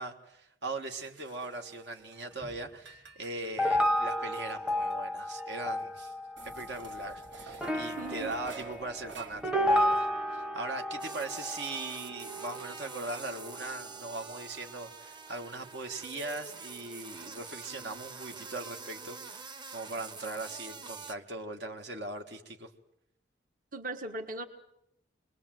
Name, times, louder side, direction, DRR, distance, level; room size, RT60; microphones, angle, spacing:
voice 1, 0.0-6.1 6.4-22.7, right 2 dB, 65° right, 4 dB, 1.6 m, -40 dB
sound 1, 1.0-2.4 2.7-5.0 5.4-5.5 5.8-5.9 6.4-9.8, right 5 dB, 85° right, 2.8 m, -49 dB
sound 2, 2.4-2.5 3.6-14.6 15.4-16.1 16.6-17.0 18.6-18.7, left 1 dB, 5° right, 0.8 m, -33 dB
voice 2, 7.9-8.3 23.7-24.4, right 2 dB, 50° right, 5 dB, 1.5 m, -38 dB
sound 3, 11.0-21.2, right 4 dB, 25° right, 1.0 m, -46 dB
27.5 x 21.0 x 7.7 m, 0.80 s
head